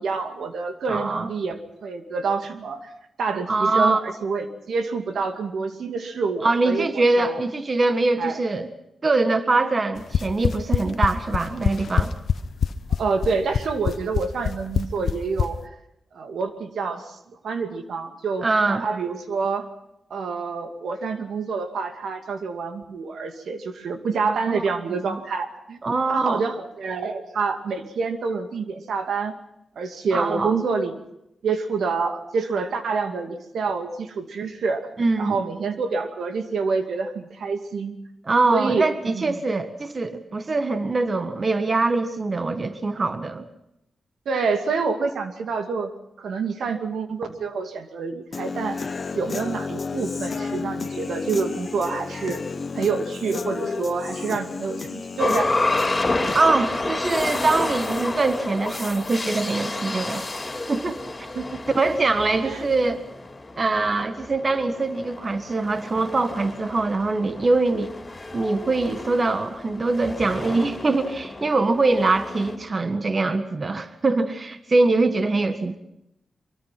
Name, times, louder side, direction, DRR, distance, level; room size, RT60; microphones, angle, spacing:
voice 1, 0.0-2.9 3.2-7.4 8.2-8.4 13.0-15.6 16.1-17.2 17.4-19.7 20.1-25.8 26.1-29.3 29.8-30.9 31.4-34.9 35.2-38.0 38.5-39.4 44.3-45.9 46.2-48.8 49.1-52.4 52.7-55.5 61.3-61.6 62.4-62.6, right 4 dB, 85° right, 6 dB, 2.4 m, -27 dB
voice 2, 0.9-1.3 3.5-4.0 6.4-8.7 9.0-12.1 18.4-18.8 24.5-24.6 24.9-25.2 25.8-26.4 30.1-30.6 35.0-35.4 38.3-43.5 56.3-60.3 60.7-61.0 61.7-63.0 63.6-67.9 68.3-75.8, right 3 dB, 40° right, 9 dB, 1.6 m, -23 dB
sound 1, 10.0-15.5, left 7 dB, 70° left, 0.9 m, -22 dB
Human voice / Guitar, 48.3-56.3, left 4 dB, 45° left, 1.1 m, -32 dB
sound 2, 55.2-72.6, left 2 dB, 25° left, 4.5 m, -30 dB
24.0 x 24.0 x 5.9 m, 0.82 s
wide cardioid pair, 95°, 0 cm